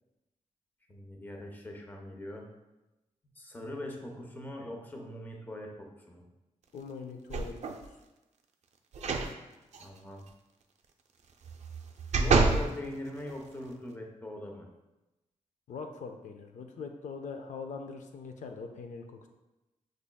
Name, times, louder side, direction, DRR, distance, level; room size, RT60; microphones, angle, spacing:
voice 1, 0.9-2.5 3.4-6.2 9.8-10.2 12.1-14.7, left 1 dB, 15° left, 1 dB, 0.6 m, -42 dB
voice 2, 6.7-8.0 9.0-9.3 15.7-19.3, left 5 dB, 80° left, 5 dB, 0.4 m, -42 dB
sound 1, 7.3-7.9 8.9-9.3 9.7-9.8 11.4-12.7 13.3-13.4, right 4 dB, 65° right, 0.4 m, -27 dB
6.2 x 3.4 x 2.2 m, 1.0 s
wide cardioid pair, 130°, 13 cm